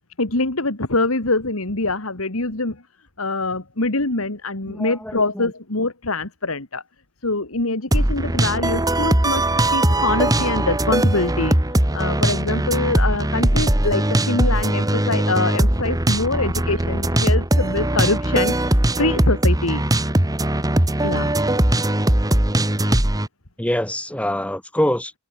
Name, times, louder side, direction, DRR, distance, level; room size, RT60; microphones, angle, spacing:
voice 1, 0.2-2.8 3.2-6.8 7.2-9.4 9.7-19.8 21.0-21.3, left 2 dB, 75° left, 2.5 m, -24 dB
voice 2, 4.7-5.5 17.0-17.1 23.6-25.1, left 1 dB, 5° left, 2.0 m, -25 dB
sound 1, 7.9-23.3, right 1 dB, 15° right, 1.5 m, -20 dB
head